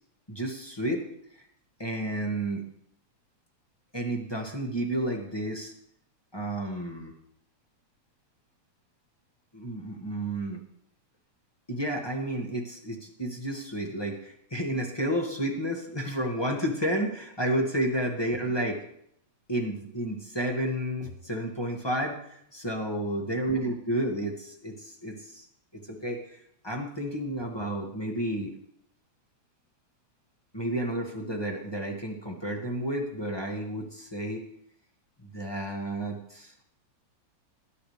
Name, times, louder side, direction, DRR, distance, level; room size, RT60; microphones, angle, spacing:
voice 1, 0.3-1.0 1.8-2.6 3.9-5.7 6.3-7.1 9.5-10.6 11.7-18.8 19.5-25.5 25.7-26.4 26.6-28.5 30.5-34.4 35.2-36.5, right 1 dB, 10° left, 1 dB, 1.4 m, -31 dB
20.5 x 11.0 x 3.4 m, 0.70 s
omnidirectional pair, 3.3 m